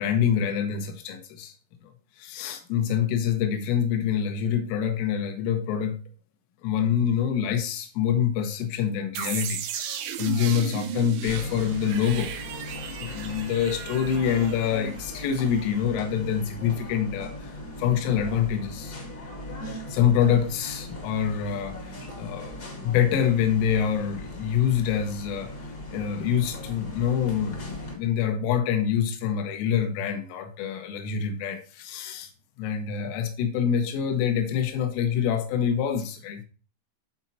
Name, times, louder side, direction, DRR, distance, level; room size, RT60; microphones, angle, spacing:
voice 1, 0.0-1.5 1.8-6.0 6.6-12.3 13.0-19.0 19.9-32.3 32.6-36.4, left 8 dB, 85° left, 3.7 m, -26 dB
sound 1, 9.2-15.9, right 9 dB, 80° right, 2.3 m, -36 dB
sound 2, 11.3-27.9, left 1 dB, 55° left, 1.1 m, -39 dB
13.0 x 4.4 x 2.7 m
omnidirectional pair, 5.6 m